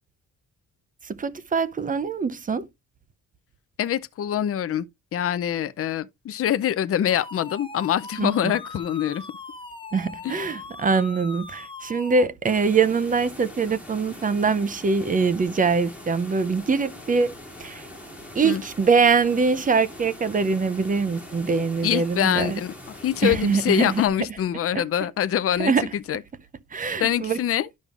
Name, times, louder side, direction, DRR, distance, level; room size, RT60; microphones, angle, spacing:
voice 1, 1.0-2.7 8.2-8.5 9.9-17.3 17.6-17.9 18.3-22.6 23.2-24.0 24.7-24.8 25.6-25.9 26.7-27.4, right 5 dB, 25° right, 0.5 m, -23 dB
voice 2, 3.8-4.9 5.1-9.2 10.2-10.4 18.4-18.6 21.8-22.7 23.0-25.7 26.1-26.2 27.0-27.7, left 10 dB, 40° left, 0.5 m, -24 dB
sound 1, 7.1-12.3, left 3 dB, 15° left, 0.9 m, -40 dB
sound 2, 12.4-24.1, left 1 dB, 5° right, 2.2 m, -42 dB
11.5 x 5.2 x 2.4 m
cardioid pair, 140°, 34 cm